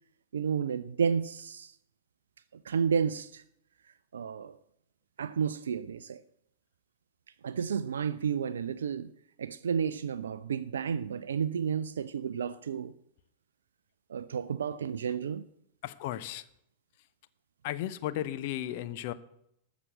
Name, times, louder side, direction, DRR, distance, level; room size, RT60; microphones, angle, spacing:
voice 1, 0.3-1.8 2.5-3.4 4.1-4.6 5.2-6.2 7.4-9.1 9.4-12.9 14.1-15.5, right 7 dB, 65° right, 0.4 m, -31 dB
voice 2, 15.8-16.4 17.6-19.1, left 13 dB, 50° left, 0.8 m, -35 dB
13.5 x 6.1 x 7.9 m
figure-of-eight pair, 95°, 0 cm